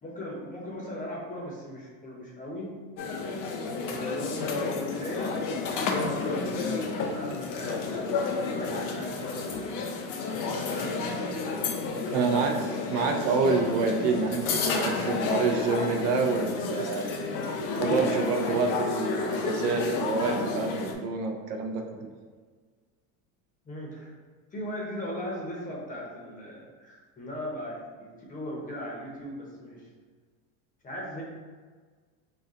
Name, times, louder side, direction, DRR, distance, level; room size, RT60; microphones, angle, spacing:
voice 1, 0.0-2.7 3.8-9.8 10.4-11.4 12.0-12.5 23.6-24.1 24.5-29.9 30.8-31.2, left 1 dB, 20° left, -3 dB, 0.8 m, -38 dB
sound 1, 3.0-20.9, left 4 dB, 50° left, 0.6 m, -31 dB
voice 2, 12.1-12.6 12.9-17.2 17.8-22.1, right 4 dB, 65° right, 3 dB, 0.6 m, -28 dB
4.0 x 2.2 x 3.6 m, 1.5 s
supercardioid pair, 135°, 41 cm